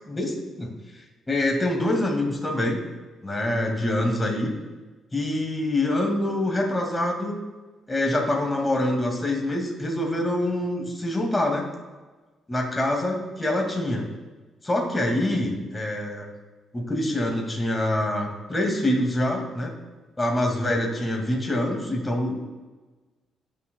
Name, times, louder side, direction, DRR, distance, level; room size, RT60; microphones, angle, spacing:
voice 1, 0.1-0.7 1.3-2.8 3.2-4.5 5.1-7.4 7.9-11.6 12.5-14.1 14.6-16.3 16.7-19.7 20.2-22.4, left 1 dB, 15° left, 1 dB, 2.2 m, -25 dB
17.0 x 6.6 x 2.3 m, 1.3 s
cardioid pair, 90°, 0 cm